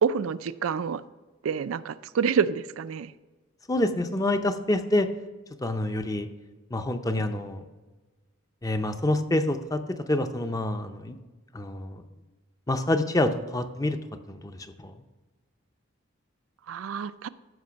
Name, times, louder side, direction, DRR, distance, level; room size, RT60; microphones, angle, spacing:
voice 1, 0.0-1.0 1.4-3.1 16.7-17.3, right 6 dB, 85° right, 13 dB, 0.4 m, -27 dB
voice 2, 3.7-5.1 5.6-6.3 6.7-7.6 8.6-11.2 11.5-12.0 12.7-14.0 14.3-14.9, left 1 dB, 15° left, 8 dB, 0.5 m, -27 dB
14.0 x 5.3 x 5.1 m, 1.2 s
head